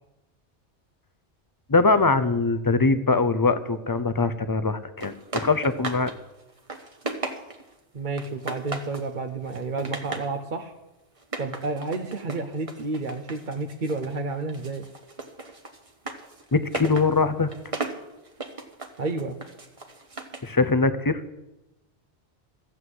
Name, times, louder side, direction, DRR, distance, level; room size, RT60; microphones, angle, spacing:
voice 1, 1.7-6.1 16.5-17.5 20.4-21.2, left 3 dB, 25° left, 12 dB, 0.6 m, -22 dB
sound 1, 5.0-6.2 6.5-7.7 8.2-9.1 9.5-10.3 11.2-14.2 14.5-20.5, right 3 dB, 30° right, 1.2 m, -36 dB
voice 2, 7.9-10.7 11.4-14.9 19.0-19.4, right 3 dB, 50° right, 5 dB, 0.9 m, -30 dB
14.5 x 7.9 x 7.8 m, 0.96 s
omnidirectional pair, 1.2 m